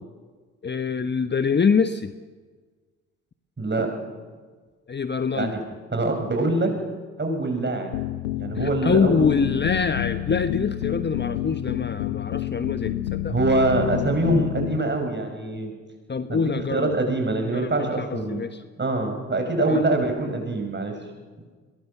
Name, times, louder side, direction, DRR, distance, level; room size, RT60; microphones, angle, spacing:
voice 1, 0.6-2.2 4.9-5.6 8.5-13.3 16.1-16.9 17.3-18.6 19.7-19.8, left 5 dB, 30° left, 10 dB, 1.2 m, -25 dB
voice 2, 3.6-3.9 5.3-5.6 5.9-6.7 7.2-8.0 8.4-9.3 13.3-15.7 16.3-16.4 16.7-18.4 18.8-21.0, right 2 dB, 30° right, 4 dB, 7.0 m, -24 dB
sound 1, 7.9-14.8, left 14 dB, 90° left, 0.7 m, -29 dB
21.5 x 21.0 x 7.2 m, 1.4 s
hypercardioid pair, 50°, 37 cm